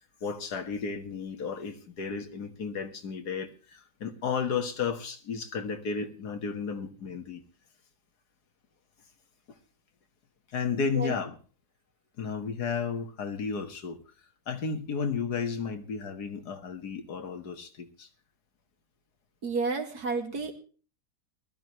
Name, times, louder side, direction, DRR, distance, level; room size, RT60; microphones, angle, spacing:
voice 1, 0.2-7.4 10.5-11.4 12.2-14.0 14.5-18.1, left 6 dB, 85° left, 7 dB, 2.2 m, -33 dB
voice 2, 19.4-20.5, right 4 dB, 75° right, 5 dB, 2.7 m, -30 dB
20.0 x 13.0 x 3.1 m, 0.38 s
omnidirectional pair, 1.7 m